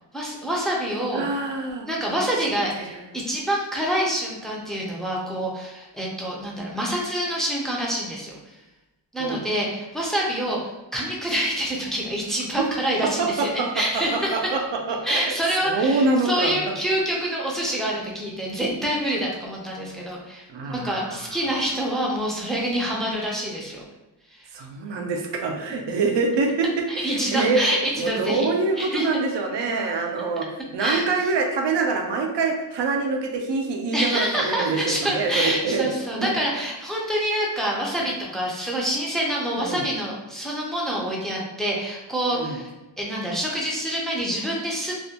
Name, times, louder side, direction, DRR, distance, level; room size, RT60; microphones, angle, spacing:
voice 1, 0.1-1.2 1.9-8.4 9.1-14.6 15.0-23.8 27.0-28.5 28.8-29.2 30.8-31.1 33.9-42.7 43.0-45.0, equal, ahead, -4 dB, 0.4 m, -26 dB
voice 2, 1.1-1.9 2.7-3.1 9.2-9.4 13.2-13.7 13.9-15.3 15.6-16.7 20.5-21.2 24.5-26.7 27.0-27.6 28.0-35.9 36.2-36.3 39.6-39.9 42.3-42.6, right 3 dB, 75° right, 2 dB, 0.5 m, -25 dB
2.4 x 2.1 x 2.7 m, 1.0 s
wide cardioid pair, 120°, 43 cm